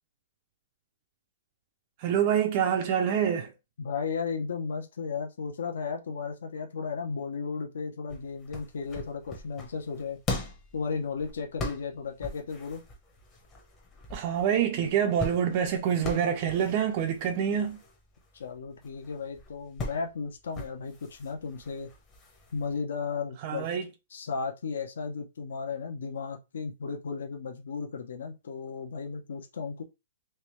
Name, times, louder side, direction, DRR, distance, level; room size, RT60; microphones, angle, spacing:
voice 1, 2.0-3.5 14.1-17.8 23.4-23.9, right 8 dB, 30° right, 0.5 m, -26 dB
voice 2, 3.8-10.2 10.7-12.8 18.3-21.9 22.5-23.7 24.1-29.8, left 5 dB, 65° left, 0.8 m, -35 dB
sound 1, 8.1-22.8, left 2 dB, 15° left, 0.8 m, -41 dB
3.3 x 3.1 x 3.1 m
hypercardioid pair, 175°, 0 cm